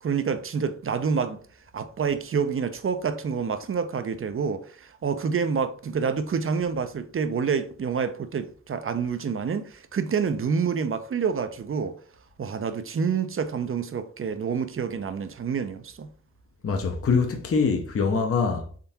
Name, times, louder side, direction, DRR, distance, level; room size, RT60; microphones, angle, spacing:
voice 1, 0.0-1.4 1.7-12.0 12.4-16.1, right 6 dB, 45° right, 0.5 m, -28 dB
voice 2, 16.6-18.8, left 5 dB, 45° left, 0.7 m, -24 dB
3.7 x 3.4 x 2.8 m
cardioid pair, 60°, 31 cm